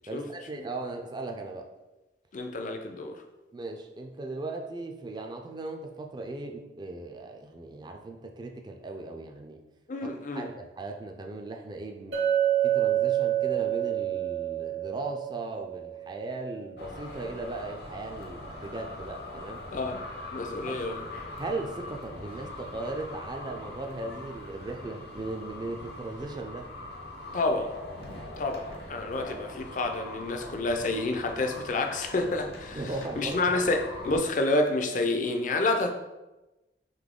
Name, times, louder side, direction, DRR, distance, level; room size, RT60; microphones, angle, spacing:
voice 1, 0.1-1.7 3.5-9.6 10.0-12.2 12.6-19.6 20.6-20.8 21.4-26.7 32.7-33.5, right 2 dB, 25° right, 3 dB, 0.4 m, -37 dB
voice 2, 2.3-3.1 9.9-10.4 19.7-20.0 20.3-21.1 27.3-27.7 28.4-32.8 33.2-35.9, left 2 dB, 45° left, 5 dB, 0.5 m, -29 dB
Chink clink, 12.1-16.3, right 11 dB, 70° right, 0.9 m, -28 dB
sound 1, 16.8-34.2, left 1 dB, 65° left, 0.8 m, -42 dB
4.0 x 3.1 x 3.6 m, 1.0 s
head